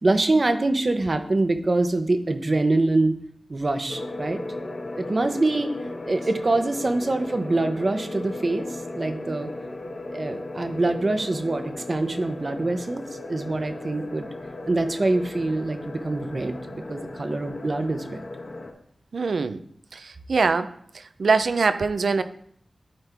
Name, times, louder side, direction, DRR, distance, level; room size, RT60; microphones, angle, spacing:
voice 1, 0.0-3.2 3.5-4.4 5.0-5.7 6.0-9.5 10.1-14.3 14.7-18.2, right 2 dB, 40° right, 8 dB, 0.8 m, -25 dB
sound 1, 3.9-18.7, left 2 dB, 55° left, 1.1 m, -36 dB
voice 2, 19.1-19.6 19.9-20.7 21.2-22.2, right 4 dB, 75° right, 11 dB, 0.5 m, -23 dB
12.5 x 4.4 x 3.4 m, 0.65 s
wide cardioid pair, 90°, 0 cm